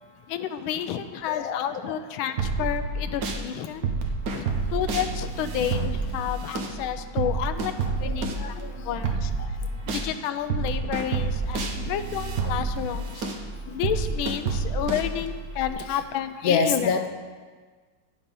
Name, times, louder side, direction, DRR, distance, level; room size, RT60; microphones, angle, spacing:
voice 1, 0.3-3.9 4.3-4.4 4.7-7.7 8.0-8.6 8.8-9.3 9.9-13.3 13.7-16.9, left 10 dB, 85° left, 10 dB, 1.4 m, -30 dB
voice 2, 1.2-1.9 7.2-7.3 7.6-7.7 8.0-8.7 9.0-9.5 15.9-16.0 16.4-17.1, left 5 dB, 60° left, 6 dB, 1.1 m, -28 dB
sound 1, 2.4-3.4 3.8-10.1 10.5-15.7, right 4 dB, 55° right, 1.2 m, -29 dB
9.9 x 7.0 x 5.3 m, 1.5 s
omnidirectional pair, 2.2 m